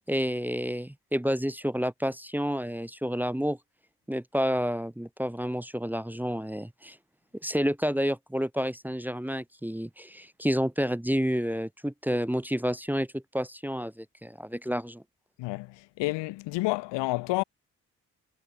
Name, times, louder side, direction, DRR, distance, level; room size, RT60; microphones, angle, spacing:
voice 1, 0.1-3.6 4.1-7.0 7.4-15.0, equal, 5° right, 1.0 m, -29 dB
voice 2, 16.0-17.4, left 21 dB, 75° left, 1.1 m, -29 dB
hypercardioid pair, 40°, 43 cm